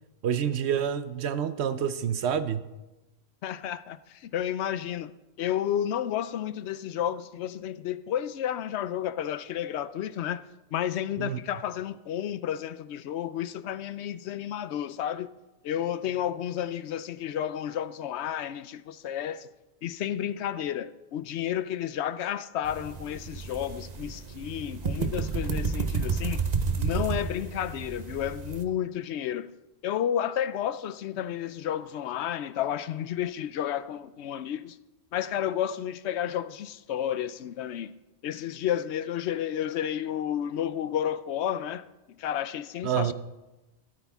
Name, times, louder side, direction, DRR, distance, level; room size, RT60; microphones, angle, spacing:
voice 1, 0.2-2.6 11.2-11.4 42.8-43.1, right 8 dB, 80° right, 1.0 m, -28 dB
voice 2, 3.4-5.1 5.4-10.4 10.7-15.3 15.6-19.5 19.8-26.5 26.8-29.5 29.8-34.8 35.1-38.0 38.2-43.1, left 10 dB, 85° left, 0.9 m, -31 dB
sound 1, 22.6-28.6, right 5 dB, 45° right, 0.8 m, -31 dB
13.0 x 13.0 x 3.5 m
omnidirectional pair, 1.1 m